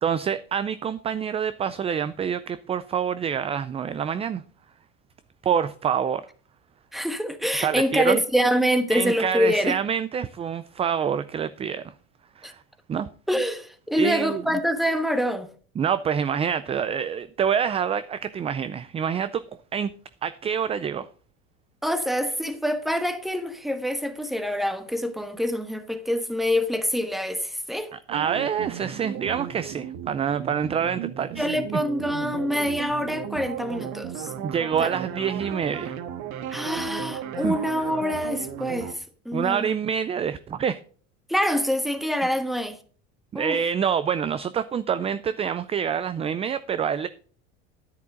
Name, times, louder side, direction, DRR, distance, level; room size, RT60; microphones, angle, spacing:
voice 1, 0.0-4.4 5.4-6.3 7.6-8.2 8.9-11.9 12.4-12.6 12.9-13.1 13.9-14.6 15.8-19.4 19.7-19.9 20.2-21.1 27.9-31.5 31.7-31.8 34.4-35.9 37.4-37.5 39.3-40.8 43.3-47.1, right 7 dB, 20° right, 0.4 m, -26 dB
voice 2, 6.9-9.8 12.4-12.5 13.3-15.5 21.8-27.9 31.4-34.3 34.8-35.0 36.5-39.7 41.3-42.8 43.3-43.6, equal, ahead, 1.2 m, -25 dB
sound 1, 28.1-38.9, right 9 dB, 65° right, 1.5 m, -35 dB
10.5 x 9.6 x 3.7 m
supercardioid pair, 125°, 32 cm